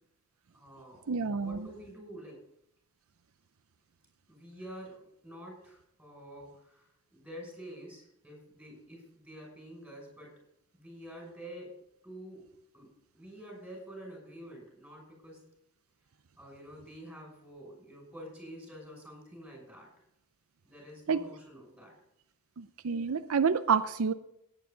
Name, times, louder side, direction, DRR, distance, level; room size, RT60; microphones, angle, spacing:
voice 1, 0.5-1.1 1.4-2.4 4.3-10.3 10.7-11.8 12.0-12.4 12.7-15.4 16.4-19.9 20.6-21.9, equal, 5° right, 0 dB, 6.3 m, -48 dB
voice 2, 1.1-1.6 21.1-21.2 22.6-24.1, right 6 dB, 70° right, 11 dB, 0.5 m, -28 dB
17.5 x 9.1 x 3.9 m, 0.77 s
head